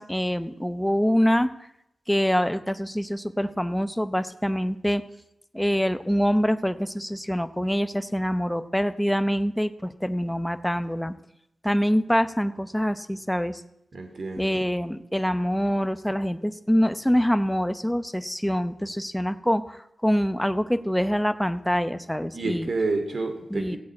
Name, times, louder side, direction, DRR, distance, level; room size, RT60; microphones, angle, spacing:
voice 1, 0.0-1.5 2.1-5.0 5.5-11.1 11.6-13.6 14.4-22.7 23.5-23.8, equal, 5° left, 11 dB, 0.8 m, -25 dB
voice 2, 13.9-14.5 22.3-23.8, right 3 dB, 50° right, 6 dB, 2.7 m, -29 dB
16.0 x 8.6 x 8.6 m, 0.82 s
wide cardioid pair, 135°, 0 cm